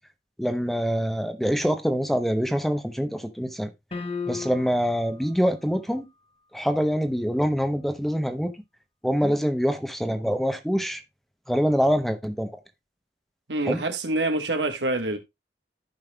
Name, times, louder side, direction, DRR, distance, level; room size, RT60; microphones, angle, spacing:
voice 1, 0.4-3.7 4.3-6.1 6.5-8.5 9.0-11.0 11.5-12.5 13.7-13.8, equal, ahead, 0.7 m, -25 dB
sound 1, 3.9-5.0, left 5 dB, 35° left, 0.8 m, -33 dB
voice 2, 13.5-15.2, right 2 dB, 90° right, 1.4 m, -26 dB
14.5 x 5.4 x 2.2 m
head